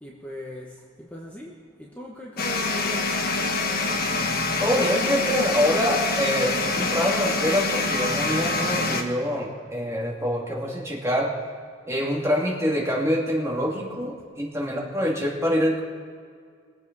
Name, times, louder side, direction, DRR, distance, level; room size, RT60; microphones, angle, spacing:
voice 1, 0.0-1.5 1.8-3.1, equal, 10° left, -3 dB, 1.2 m, -39 dB
sound 1, 2.4-9.0, left 3 dB, 50° left, 1.3 m, -25 dB
voice 2, 4.6-11.3 11.9-15.8, equal, 15° right, -3 dB, 2.5 m, -25 dB
21.5 x 7.8 x 5.4 m, 2.1 s
head